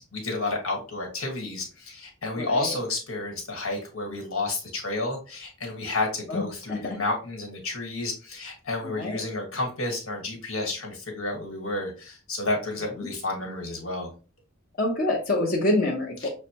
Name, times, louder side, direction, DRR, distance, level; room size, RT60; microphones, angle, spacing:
voice 1, 0.1-14.1 16.2-16.3, left 2 dB, 80° left, 1 dB, 1.5 m, -31 dB
voice 2, 2.4-2.7 6.3-7.0 8.8-9.2 13.0-13.1 14.8-16.3, left 1 dB, 45° left, -3 dB, 0.9 m, -27 dB
6.4 x 2.2 x 2.9 m, 0.35 s
head